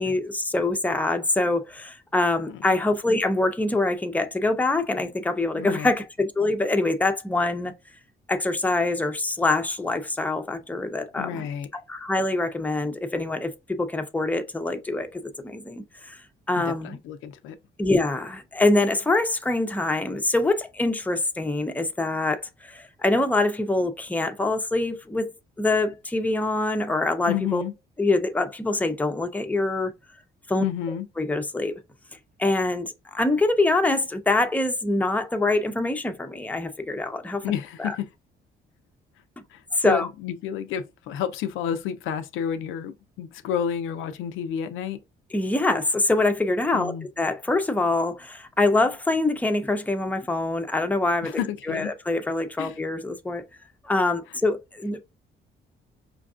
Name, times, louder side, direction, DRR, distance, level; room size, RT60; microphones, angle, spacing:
voice 1, 0.0-7.7 8.3-11.5 11.7-16.2 16.5-17.0 17.8-25.3 25.6-27.6 28.0-29.9 30.5-30.6 31.2-31.7 32.4-37.4 37.8-37.9 39.8-40.1 45.3-51.3 51.7-53.4 53.8-55.0, left 2 dB, 10° left, 0.6 m, -24 dB
voice 2, 5.6-5.9 11.2-11.7 16.6-17.6 27.3-27.7 30.6-31.1 37.4-38.1 39.5-45.0 46.7-47.1 51.2-51.9 52.6-52.8, left 9 dB, 90° left, 0.5 m, -30 dB
5.1 x 2.5 x 2.4 m
cardioid pair, 90°, 20 cm